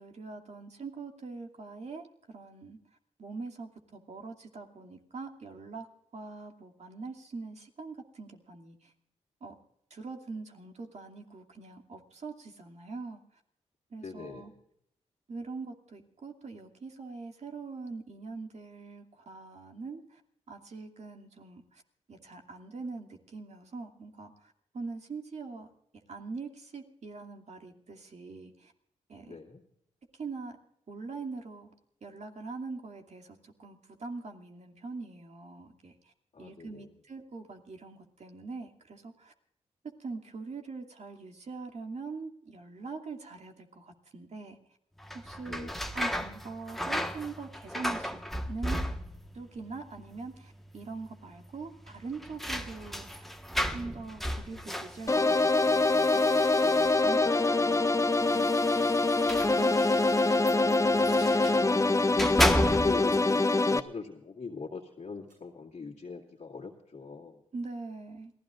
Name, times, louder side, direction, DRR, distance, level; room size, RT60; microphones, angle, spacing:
voice 1, 0.0-2.8 3.2-5.9 6.1-8.9 9.4-9.5 9.9-13.2 13.9-14.5 15.3-20.2 20.5-21.8 22.1-25.7 26.1-28.7 29.1-29.4 30.2-30.6 30.9-31.7 32.0-35.9 36.4-39.3 40.0-44.6 45.1-48.2 48.5-48.8 49.3-53.3 53.7-59.8 67.5-68.3, right 4 dB, 60° right, 3 dB, 2.5 m, -43 dB
voice 2, 14.0-14.5 29.3-29.6 36.3-36.9 45.5-45.8 60.5-61.3 62.2-67.4, left 4 dB, 60° left, -6 dB, 2.2 m, -42 dB
sound 1, 45.0-49.4 49.7-50.4 50.7-50.8 51.8-57.3 58.1-61.6 62.0-63.2, equal, ahead, 1.4 m, -34 dB
sound 2, 55.1-63.8, left 2 dB, 25° left, 0.8 m, -24 dB
sound 3, 57.0-57.5 57.7-58.6 59.6-59.7 60.6-60.7 60.9-61.3 62.8-63.7 65.3-65.4, right 2 dB, 80° right, 7.1 m, -60 dB
28.0 x 16.5 x 2.5 m, 0.76 s
cardioid pair, 55°, 13 cm